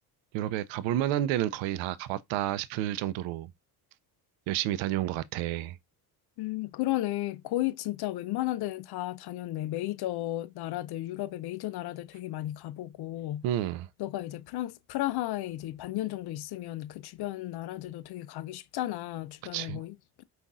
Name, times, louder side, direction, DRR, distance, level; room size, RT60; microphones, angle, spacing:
voice 1, 0.3-3.5 4.5-5.8 13.4-13.9 19.5-19.8, right 13 dB, 70° right, 0.5 m, -30 dB
voice 2, 6.4-13.5 14.0-20.2, left 15 dB, 55° left, 0.5 m, -34 dB
5.4 x 2.5 x 2.4 m
hypercardioid pair, 60°, 47 cm